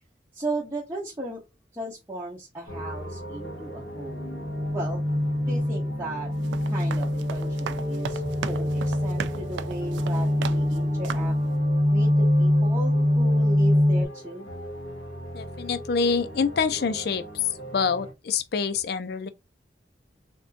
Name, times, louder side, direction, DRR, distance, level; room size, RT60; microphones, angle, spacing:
voice 1, 0.3-1.4 1.7-4.3 4.7-5.0 5.5-6.3 6.7-11.3 11.9-14.5, right 2 dB, 15° right, 0.9 m, -36 dB
sound 1, 2.7-18.1, equal, 90° left, 1.3 m, -40 dB
sound 2, 4.0-14.1, left 1 dB, 40° right, 0.7 m, -24 dB
sound 3, 6.3-10.8 11.0-11.4, right 7 dB, 85° right, 0.3 m, -37 dB
voice 2, 15.3-19.3, left 5 dB, 60° left, 0.4 m, -26 dB
3.5 x 2.6 x 2.5 m
head